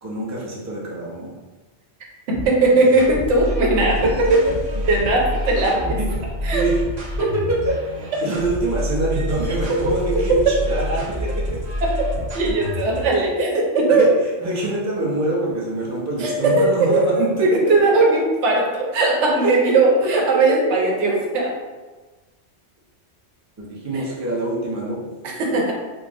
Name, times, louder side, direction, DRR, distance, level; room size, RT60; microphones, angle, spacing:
voice 1, 0.0-1.4 4.4-4.5 6.0-6.1 6.5-6.8 7.2-7.9 8.2-11.6 13.3-13.4 14.0-14.1 14.4-17.7 20.0-20.1 20.5-20.6 23.6-25.0, right 2 dB, 20° right, -5 dB, 0.6 m, -25 dB
sound 1, 2.3-13.1, left 1 dB, 40° right, 0.9 m, -28 dB
voice 2, 2.3-4.4 4.9-6.0 6.4-6.6 9.8-9.9 12.3-14.1 16.2-21.5 23.9-24.1 25.2-25.7, right 2 dB, 85° right, -1 dB, 1.0 m, -18 dB
3.9 x 2.0 x 3.6 m, 1.3 s
omnidirectional pair, 1.2 m